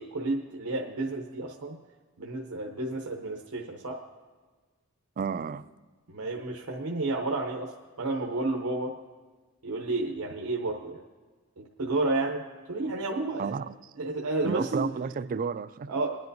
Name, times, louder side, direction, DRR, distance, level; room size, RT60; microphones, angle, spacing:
voice 1, 0.0-1.8 2.2-4.0 6.1-7.7 8.0-9.0 9.6-11.0 11.6-12.4 12.7-13.6 14.0-14.9 15.9-16.2, right 2 dB, 85° right, 0.8 m, -31 dB
voice 2, 5.2-5.7 13.4-13.7 14.4-15.9, right 6 dB, 40° right, 0.3 m, -32 dB
21.0 x 10.5 x 2.7 m
head